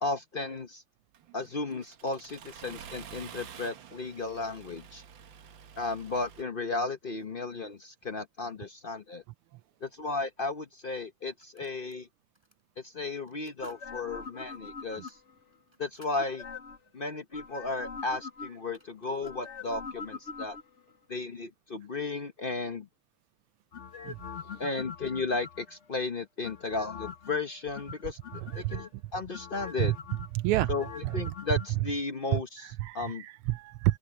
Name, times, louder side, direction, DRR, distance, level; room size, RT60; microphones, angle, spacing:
voice 1, 0.0-0.8 1.3-5.0 5.8-9.2 9.8-12.1 12.8-15.2 15.8-16.4 16.9-20.6 21.1-22.9 24.6-29.9 30.7-33.2, left 3 dB, 60° left, 0.5 m, -34 dB
Accelerating revving vroom, 1.1-6.4, right 8 dB, 65° right, 1.9 m, -49 dB
sound 1, 11.0-12.0 12.3-12.6 13.2-13.9 14.2-14.3 14.9-16.3 18.2-18.3 18.5-19.4, right 1 dB, 10° right, 7.2 m, -61 dB
sound 2, 13.6-15.4 16.2-16.9 17.3-18.8 19.2-20.9 23.7-25.8 26.4-27.3 27.7-28.9 29.3-31.7 32.0-32.1, left 6 dB, 40° left, 1.2 m, -43 dB
voice 2, 30.3-30.7 31.0-31.1 32.3-32.4 32.8-34.0, right 16 dB, 85° right, 1.5 m, -28 dB
open air
omnidirectional pair, 2.3 m